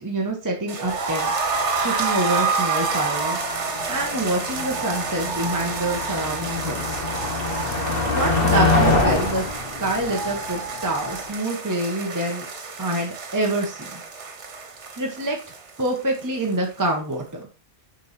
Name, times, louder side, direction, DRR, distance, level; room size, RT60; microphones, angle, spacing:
voice 1, 0.0-1.5 1.8-3.4 3.9-7.0 8.1-9.4 9.8-12.5 12.8-14.0 15.0-15.4 15.8-17.5, right 1 dB, 15° right, 0 dB, 1.2 m, -26 dB
sound 1, 0.7-16.5 16.8-16.9 17.2-17.3, right 4 dB, 90° right, 1.5 m, -29 dB
Motor vehicle (road), 0.9-11.3, left 3 dB, 55° left, 1.6 m, -26 dB
7.1 x 4.7 x 4.3 m, 0.35 s
omnidirectional pair, 1.2 m